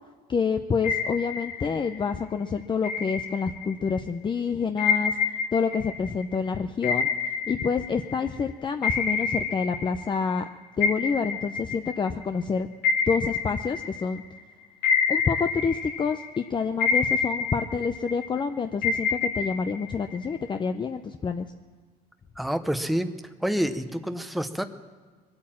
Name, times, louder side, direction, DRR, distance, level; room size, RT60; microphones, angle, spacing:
voice 1, 0.3-5.2 5.5-7.1 7.5-10.4 10.8-12.7 13.1-14.2 15.1-21.5, left 5 dB, 30° left, 8 dB, 0.6 m, -27 dB
sound 1, 0.8-2.1 2.8-4.0 4.8-8.4 8.8-10.5 10.8-14.4 14.8-16.4 16.8-18.4 18.8-20.5, left 5 dB, 80° left, 1.6 m, -28 dB
voice 2, 22.4-23.1 23.4-24.7, equal, ahead, 8 dB, 0.8 m, -27 dB
22.0 x 8.8 x 7.4 m, 1.5 s
cardioid pair, 110°, 17 cm